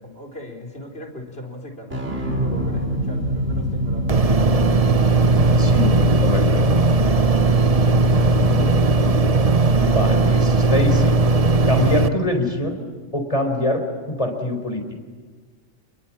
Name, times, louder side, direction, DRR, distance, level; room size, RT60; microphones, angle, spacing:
voice 1, 0.0-4.8, left 1 dB, 50° left, 3 dB, 4.5 m, -38 dB
sound 1, 1.9-10.6, right 1 dB, 65° right, 4.7 m, -26 dB
sound 2, 4.1-12.1, right 3 dB, 35° right, 0.8 m, -17 dB
voice 2, 5.6-6.7 9.7-11.2 11.7-12.8 13.1-14.9, left 1 dB, 25° left, 5 dB, 4.3 m, -24 dB
29.0 x 22.5 x 7.5 m, 1.4 s
omnidirectional pair, 1.3 m